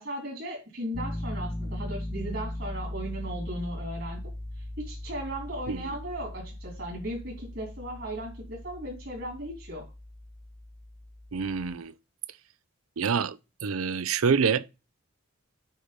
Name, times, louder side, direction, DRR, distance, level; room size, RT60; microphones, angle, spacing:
voice 1, 0.0-4.2 4.8-9.8, right 1 dB, 60° right, 3.1 m, -36 dB
Piano, 0.9-11.8, left 1 dB, 5° left, 0.6 m, -38 dB
voice 2, 11.3-11.9 13.0-14.6, right 6 dB, 90° right, 0.5 m, -27 dB
9.0 x 3.2 x 5.1 m
head